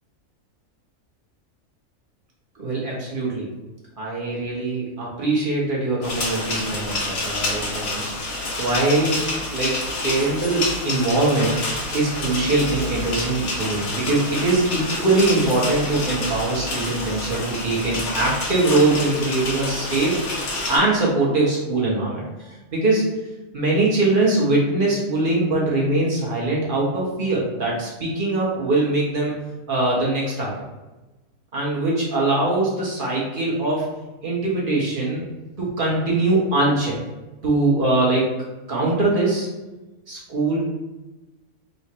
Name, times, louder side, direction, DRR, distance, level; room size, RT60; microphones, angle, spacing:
voice 1, 2.5-3.5 4.0-9.2 9.5-9.7 10.0-11.6 11.9-23.1 23.5-29.3 29.7-30.5 31.5-33.9 34.2-35.2 35.6-37.0 37.4-38.2 38.7-39.5 40.1-40.6, right 2 dB, 40° right, -5 dB, 1.3 m, -22 dB
sound 1, 6.0-20.8, left 2 dB, 85° left, 1.4 m, -28 dB
3.8 x 2.4 x 4.3 m, 1.1 s
omnidirectional pair, 1.4 m